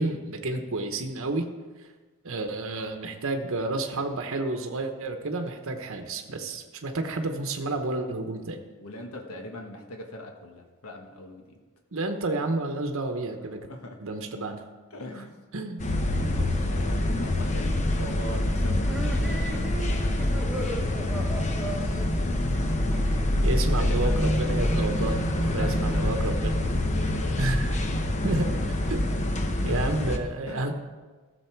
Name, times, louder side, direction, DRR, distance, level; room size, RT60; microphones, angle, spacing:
voice 1, 0.0-1.5 2.2-8.6 11.9-13.7 14.0-14.6 15.5-15.8 23.4-25.2 25.5-26.6 27.4-27.8 28.2-28.5 28.8-29.3 29.6-30.7, right 2 dB, 60° right, 5 dB, 1.0 m, -30 dB
voice 2, 8.8-11.6 13.7-14.0 14.9-15.4 16.1-22.3 23.7-24.9 25.3-26.3 27.0-27.8 28.1-28.3 28.8-28.9 29.6-29.9 30.5-30.7, left 1 dB, 70° left, 3 dB, 1.3 m, -42 dB
sound 1, 15.8-30.2, left 1 dB, 30° left, 0.8 m, -26 dB
sound 2, 18.8-23.4, right 1 dB, 5° right, 1.1 m, -37 dB
15.0 x 6.8 x 4.5 m, 1.3 s
head